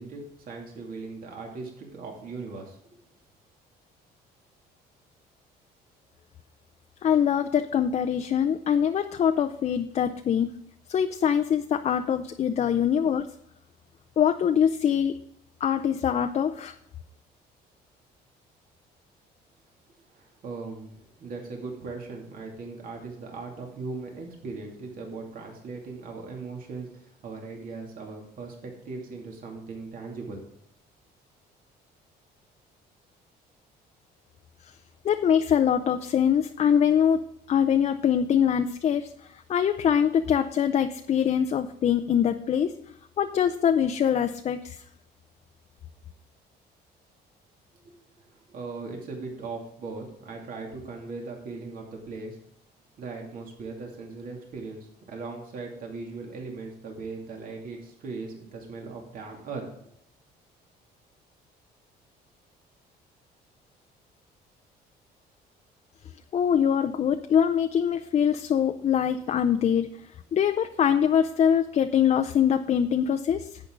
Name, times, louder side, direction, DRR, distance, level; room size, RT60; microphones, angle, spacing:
voice 1, 0.0-3.0 20.1-30.4 47.8-52.4 53.0-59.7, right 3 dB, 55° right, 1 dB, 2.6 m, -39 dB
voice 2, 7.0-10.5 10.9-13.3 14.2-15.2 15.6-16.7 34.6-34.7 35.0-44.8 66.3-69.9 70.3-73.6, left 8 dB, 40° left, 8 dB, 0.5 m, -23 dB
11.0 x 8.5 x 3.8 m, 0.74 s
cardioid pair, 120°, 17 cm